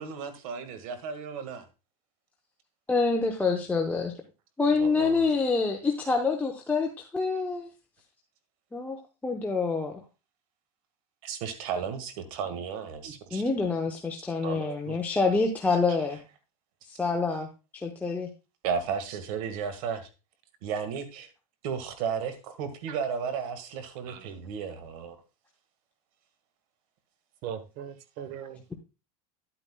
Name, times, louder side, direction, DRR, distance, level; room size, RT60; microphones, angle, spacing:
voice 1, 0.0-1.6 4.8-5.2 11.2-13.4 18.6-20.1 20.6-21.3 21.6-25.2, right 6 dB, 70° right, 10 dB, 1.8 m, -34 dB
voice 2, 2.9-4.1 4.6-7.7 8.7-9.0 9.2-9.9 13.3-16.2 16.9-18.3, left 4 dB, 10° left, 1 dB, 0.9 m, -27 dB
voice 3, 14.4-15.5 19.1-19.2 22.9-23.0 24.1-24.5 27.4-28.6, right 8 dB, 50° right, 11 dB, 1.2 m, -40 dB
10.5 x 8.8 x 2.2 m, 0.30 s
supercardioid pair, 140°, 19 cm